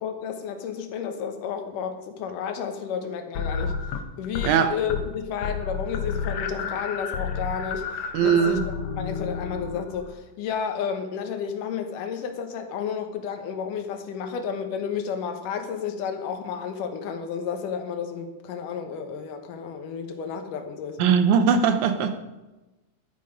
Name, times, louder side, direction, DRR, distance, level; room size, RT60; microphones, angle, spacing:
voice 1, 0.0-3.8 4.2-8.6 9.0-21.2, left 7 dB, 85° left, 6 dB, 2.7 m, -32 dB
sound 1, 3.4-4.6 4.8-5.2 5.4-10.2, left 5 dB, 70° left, 1.6 m, -31 dB
voice 2, 8.1-8.6 21.0-22.2, right 7 dB, 75° right, 9 dB, 2.0 m, -20 dB
12.5 x 9.1 x 5.1 m, 1.1 s
omnidirectional pair, 3.7 m